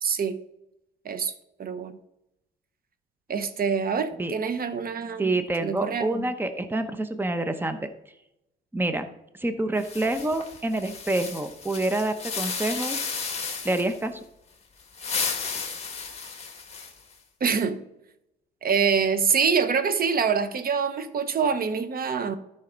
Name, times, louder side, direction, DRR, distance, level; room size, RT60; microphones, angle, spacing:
voice 1, 0.0-0.4 1.0-1.3 1.6-2.0 3.3-5.3 5.6-6.3 17.4-17.8 18.6-22.4, right 6 dB, 50° right, 11 dB, 1.0 m, -25 dB
voice 2, 5.2-7.9 8.7-9.1 9.3-13.1 13.6-14.2, right 2 dB, 10° right, 9 dB, 0.9 m, -27 dB
sound 1, 9.8-14.0 14.8-17.1, left 5 dB, 30° left, 1.8 m, -33 dB
13.0 x 5.7 x 3.9 m, 0.87 s
cardioid pair, 90°, 20 cm